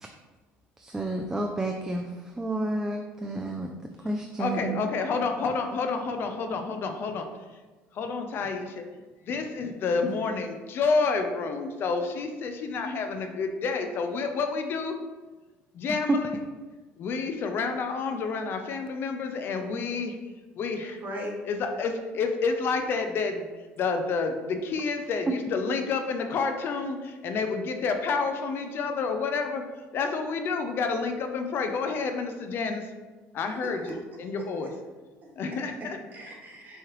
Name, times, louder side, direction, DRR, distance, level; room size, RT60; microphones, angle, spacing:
voice 1, 0.8-2.1 2.4-3.7 4.0-4.8, right 2 dB, 10° right, 3 dB, 0.3 m, -30 dB
voice 2, 4.4-7.3 7.9-8.8 9.3-15.0 15.7-16.4 17.0-20.2 20.6-21.0 21.5-23.5 23.8-29.6 29.9-32.9 33.3-34.7 35.4-36.0, left 4 dB, 50° left, 6 dB, 0.4 m, -29 dB
voice 3, 19.3-19.8 21.0-21.4 33.6-33.9 34.4-34.5 35.2-35.3 35.8-36.8, equal, 40° right, -2 dB, 1.2 m, -40 dB
4.7 x 3.1 x 3.0 m, 1.3 s
cardioid pair, 110°, 5 cm